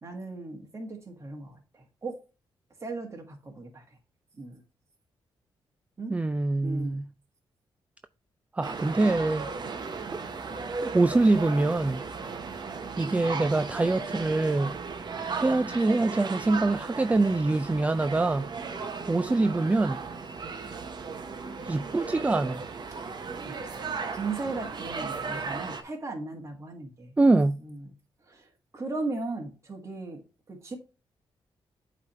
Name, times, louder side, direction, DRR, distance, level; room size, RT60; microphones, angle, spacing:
voice 1, 0.0-2.2 2.8-3.8 4.4-4.6 6.0-6.2 6.6-7.0 22.9-23.1 23.4-27.2 27.6-27.9 28.3-30.2 30.5-30.8, right 3 dB, 30° right, 1.6 m, -37 dB
voice 2, 6.1-7.0 8.5-9.5 10.1-10.2 10.8-12.0 13.0-14.8 15.3-18.5 19.1-20.0 21.6-22.6 27.2-27.6, right 2 dB, 15° right, 0.3 m, -24 dB
sound 1, 8.6-25.8, right 4 dB, 50° right, 1.0 m, -36 dB
8.3 x 3.4 x 4.2 m
cardioid pair, 90°, 10 cm